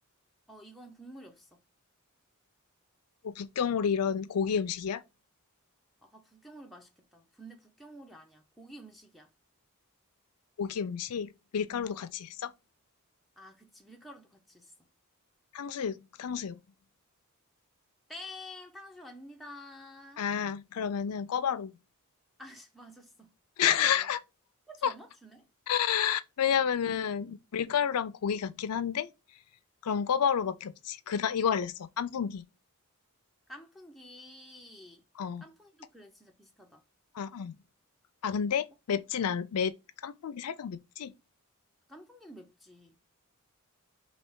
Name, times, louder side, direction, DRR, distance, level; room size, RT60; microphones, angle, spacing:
voice 1, 0.5-1.6 6.0-9.3 11.8-12.1 13.4-14.9 18.1-20.2 22.4-23.3 23.6-24.1 24.7-25.5 26.8-27.3 27.6-27.8 33.5-35.1 35.4-36.8 38.9-39.0 41.9-43.0, left 1 dB, ahead, 0.5 m, -50 dB
voice 2, 3.2-5.0 10.6-12.5 15.5-16.6 20.2-21.8 23.6-24.2 24.8-24.9 25.7-29.1 29.8-32.4 35.2-35.4 37.1-37.6 38.2-39.7 40.0-41.1, left 8 dB, 90° left, 0.4 m, -30 dB
3.2 x 2.8 x 4.6 m
head